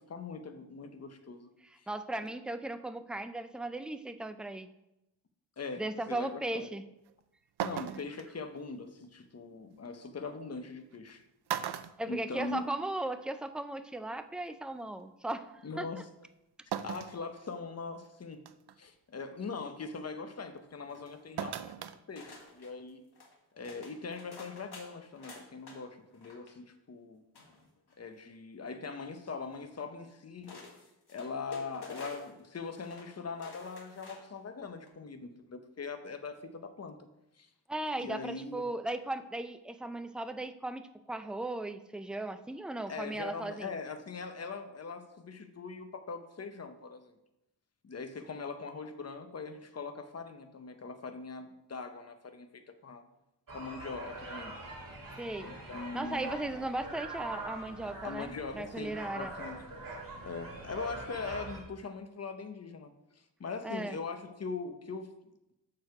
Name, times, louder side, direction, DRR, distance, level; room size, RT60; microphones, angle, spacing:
voice 1, 0.0-1.9 5.6-6.7 7.6-11.2 12.1-12.6 15.6-16.0 16.8-18.5 18.8-23.0 23.5-27.2 28.0-30.5 31.1-37.0 37.4-37.5 38.0-38.7 42.9-47.1 47.8-53.0 53.5-54.5 55.4-56.3 58.0-59.6 60.2-62.9 63.4-65.1, left 4 dB, 35° left, 7 dB, 0.8 m, -41 dB
voice 2, 1.9-4.7 5.8-6.8 12.0-15.9 37.7-43.7 55.2-55.5 55.9-59.3 63.6-64.0, right 2 dB, ahead, 9 dB, 0.4 m, -37 dB
sound 1, 7.1-7.2 7.6-8.3 9.9-10.0 10.9-11.1 11.5-12.9 13.2-13.3 14.5-14.6 16.7-17.2 17.8-17.9 18.5-18.8 21.4-22.0 22.3-22.4, right 9 dB, 70° right, 0.5 m, -37 dB
sound 2, 20.9-21.6 22.2-22.7 23.1-23.3 23.6-25.8 26.1-26.5 27.3-28.1 29.5-29.6 30.4-32.4 32.7-33.1 33.4-34.4 34.8-34.9, left 4 dB, 65° left, 1.5 m, -50 dB
sound 3, 53.5-61.6, right 2 dB, 50° right, 2.0 m, -43 dB
6.7 x 6.3 x 4.7 m, 0.88 s
wide cardioid pair, 95°, 41 cm